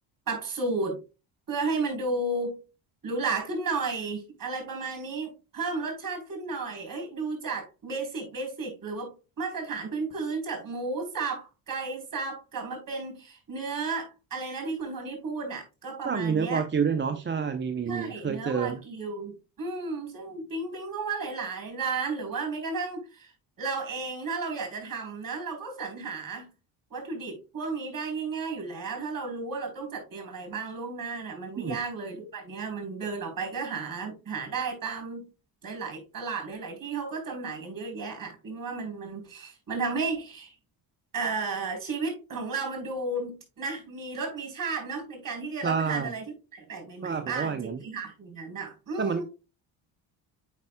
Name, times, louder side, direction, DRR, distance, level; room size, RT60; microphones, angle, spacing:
voice 1, 0.3-1.0 1.5-2.6 3.0-16.6 17.8-26.5 26.9-35.3 35.6-40.5 41.1-49.2, right 4 dB, 40° right, 3.8 m, -33 dB
voice 2, 16.0-18.8 31.6-31.8 45.6-46.1 47.0-47.8 49.0-49.2, right 6 dB, 25° right, 0.6 m, -28 dB
8.3 x 5.3 x 2.2 m
hypercardioid pair, 55°, 49 cm